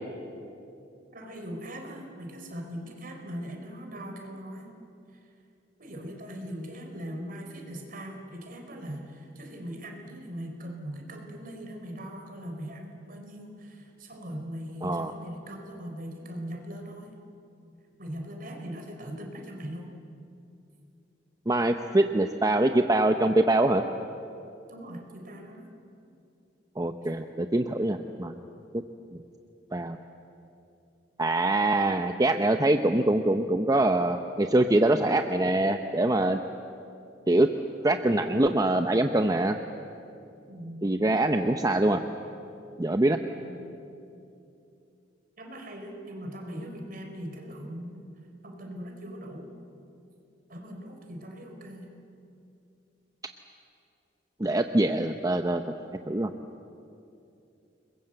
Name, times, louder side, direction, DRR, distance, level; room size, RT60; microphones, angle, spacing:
voice 1, 1.1-4.8 5.1-5.2 5.8-17.2 18.0-19.9 24.7-25.7 27.0-27.1 40.5-40.8 43.3-43.6 45.4-48.1 48.4-49.5 50.5-51.9, equal, 50° right, 2 dB, 4.5 m, -40 dB
voice 2, 21.5-23.8 26.8-28.3 29.1-29.2 29.7-30.0 31.2-36.4 37.3-37.5 37.8-39.6 40.8-42.0 42.8-43.2 54.4-55.6 56.1-56.3, right 1 dB, 20° right, 6 dB, 0.7 m, -24 dB
29.5 x 21.5 x 7.9 m, 2.7 s
head